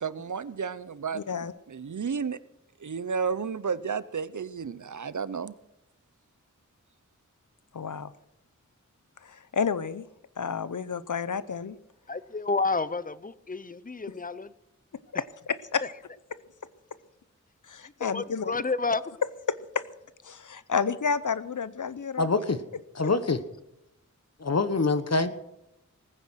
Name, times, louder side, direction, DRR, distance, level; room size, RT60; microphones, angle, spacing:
voice 1, 0.0-1.2 1.7-2.4 2.8-5.5, right 6 dB, 70° right, 0.7 m, -32 dB
voice 2, 1.1-1.5 7.7-8.1 9.2-10.1 10.4-11.8 15.1-15.8 17.7-18.6 19.5-19.8 20.2-22.3, left 6 dB, 75° left, 0.7 m, -30 dB
voice 3, 12.1-14.5 18.0-19.0, left 3 dB, 25° left, 0.7 m, -30 dB
voice 4, 22.2-22.6 22.9-23.4 24.4-25.5, left 3 dB, 55° left, 1.2 m, -25 dB
19.0 x 9.7 x 6.3 m
wide cardioid pair, 55°, 31 cm